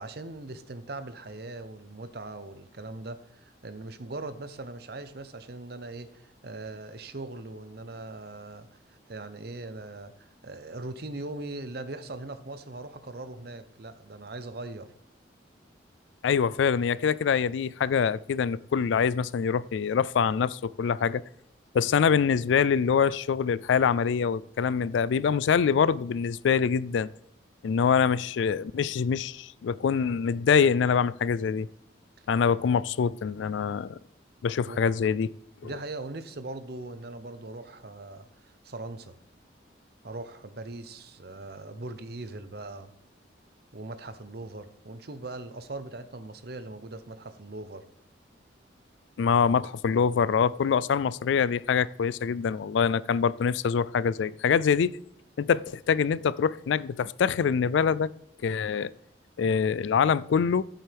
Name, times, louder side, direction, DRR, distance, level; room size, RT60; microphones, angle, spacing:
voice 1, 0.0-14.9 32.2-32.3 34.7-34.8 35.1-35.2 35.6-39.1 40.0-42.9 43.7-47.8, right 2 dB, 55° right, 0.8 m, -40 dB
voice 2, 16.2-21.2 21.7-27.1 27.6-31.7 32.3-34.0 34.4-35.3 35.6-35.7 49.2-55.0 55.4-58.1 58.4-58.9 59.4-60.6, left 6 dB, 80° left, 0.3 m, -25 dB
13.5 x 7.7 x 3.4 m
head